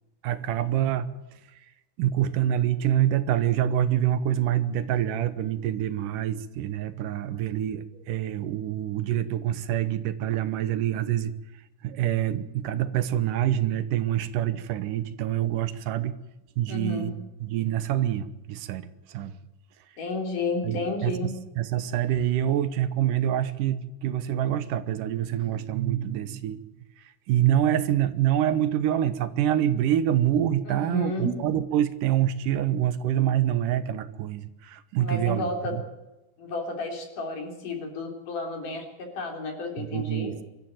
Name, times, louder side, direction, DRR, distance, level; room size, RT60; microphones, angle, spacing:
voice 1, 0.2-1.2 2.0-11.3 11.8-16.1 16.6-17.1 17.4-19.4 20.6-26.6 27.0-35.8 39.8-40.4, right 11 dB, 80° right, 13 dB, 2.7 m, -26 dB
voice 2, 16.7-17.1 20.0-21.4 30.7-31.3 35.0-35.7 36.4-40.4, left 3 dB, 75° left, 3 dB, 5.2 m, -32 dB
24.0 x 13.5 x 9.2 m, 1.0 s
omnidirectional pair, 3.8 m